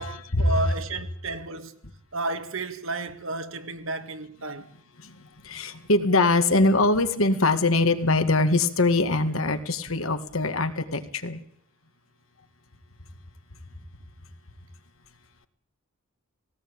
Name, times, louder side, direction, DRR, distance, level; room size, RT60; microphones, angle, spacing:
voice 1, 0.0-1.7 2.1-4.7, right 2 dB, 70° right, 1.8 m, -32 dB
voice 2, 5.4-11.4, left 2 dB, 80° left, 2.0 m, -22 dB
18.5 x 18.0 x 8.9 m
head